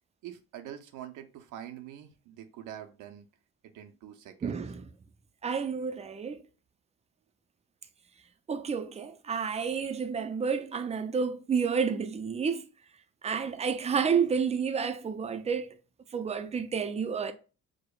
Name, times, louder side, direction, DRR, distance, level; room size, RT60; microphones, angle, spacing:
voice 1, 0.2-3.2 3.6-4.6, right 10 dB, 85° right, 0.5 m, -45 dB
voice 2, 4.4-4.9 5.4-6.4 8.5-12.7 13.2-15.8 16.1-17.3, right 6 dB, 25° right, 0.4 m, -30 dB
4.9 x 2.1 x 2.3 m
cardioid pair, 90°, 30 cm